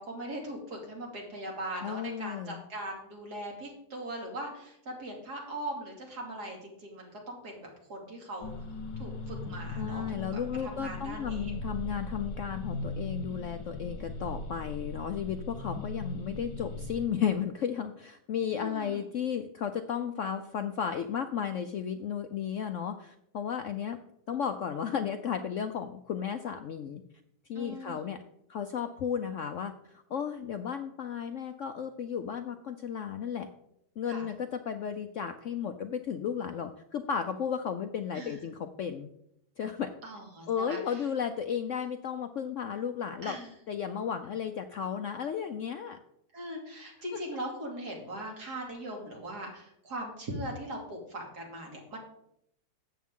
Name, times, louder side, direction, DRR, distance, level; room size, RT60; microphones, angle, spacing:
voice 1, 0.0-8.5 9.0-11.5 18.5-19.1 27.5-28.0 34.1-34.3 38.1-38.4 40.0-41.0 43.2-43.5 46.3-52.0, right 1 dB, 65° right, 0 dB, 3.0 m, -40 dB
voice 2, 1.8-2.6 9.8-24.0 24.3-27.0 27.5-28.2 28.5-33.5 34.0-39.1 39.6-39.9 40.5-43.4 43.7-46.0 47.1-47.2, left 8 dB, 65° left, 8 dB, 0.7 m, -34 dB
sound 1, 8.4-17.1, left 2 dB, 90° left, 1.9 m, -39 dB
13.0 x 8.4 x 3.7 m, 0.75 s
omnidirectional pair, 1.8 m